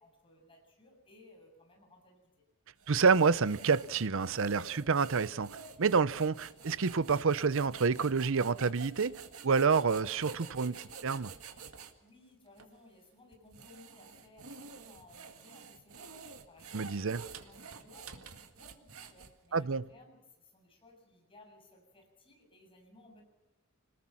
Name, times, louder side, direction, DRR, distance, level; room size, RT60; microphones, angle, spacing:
voice 1, 0.0-2.4 12.0-16.2 16.5-23.2, left 2 dB, 25° left, 7.4 m, -60 dB
sound 1, 2.8-11.9 12.6-12.7 13.3-19.6, right 5 dB, 90° right, 1.9 m, -49 dB
voice 2, 2.9-11.3 16.7-17.2 19.5-19.8, right 5 dB, 65° right, 0.7 m, -28 dB
26.5 x 20.0 x 5.9 m
head